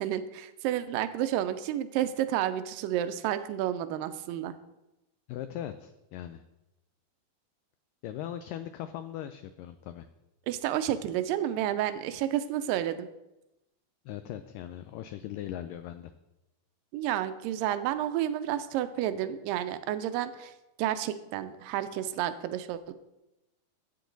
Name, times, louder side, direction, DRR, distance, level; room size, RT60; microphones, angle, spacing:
voice 1, 0.0-4.5 10.5-13.1 16.9-20.5 20.8-22.9, right 11 dB, 80° right, 11 dB, 2.1 m, -30 dB
voice 2, 5.3-6.4 8.0-10.1 14.1-16.1, left 11 dB, 85° left, 9 dB, 1.9 m, -39 dB
13.0 x 8.5 x 3.9 m, 0.94 s
omnidirectional pair, 4.4 m